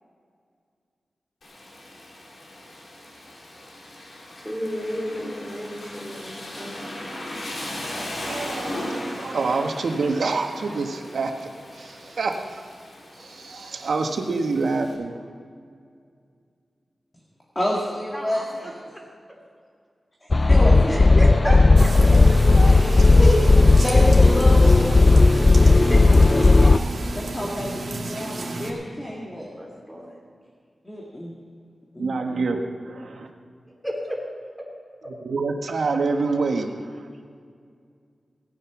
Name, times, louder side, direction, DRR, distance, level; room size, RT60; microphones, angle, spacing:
Rain, 1.4-14.9, left 1 dB, 70° left, 3.4 m, -37 dB
voice 1, 4.4-6.7 18.1-18.7 20.9-23.2 25.3-26.0 29.3-30.1 33.8-34.2 34.6-34.7, equal, 5° left, -2 dB, 3.5 m, -33 dB
voice 2, 8.2-12.6 13.2-15.2 32.0-32.6 32.9-33.3 35.2-36.8, right 3 dB, 85° right, 4 dB, 1.3 m, -26 dB
voice 3, 17.6-18.9 20.2-21.2 22.6-26.0 26.3-26.9 27.2-29.5 30.8-31.4 31.9-32.4, equal, 20° left, -3 dB, 2.0 m, -29 dB
sound 1, 20.3-26.8, left 3 dB, 35° left, 0.3 m, -14 dB
sound 2, 21.8-28.7, right 2 dB, 65° right, 2.3 m, -32 dB
18.0 x 9.9 x 6.0 m, 2.2 s
wide cardioid pair, 105°, 0 cm